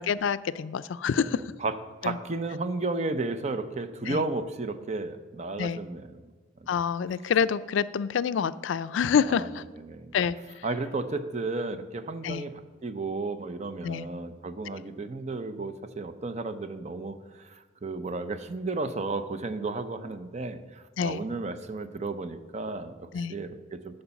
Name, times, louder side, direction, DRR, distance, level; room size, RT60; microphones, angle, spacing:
voice 1, 0.0-1.4 2.0-2.1 4.1-4.2 5.6-5.8 6.7-9.6 10.1-10.4 12.2-12.4 13.8-14.1 21.0-21.2 23.1-23.4, left 7 dB, 80° left, 16 dB, 0.4 m, -27 dB
voice 2, 1.3-1.8 2.0-6.3 6.6-6.7 9.2-10.2 10.6-24.0, right 3 dB, 35° right, 10 dB, 0.6 m, -33 dB
11.0 x 5.3 x 7.0 m, 1.4 s
head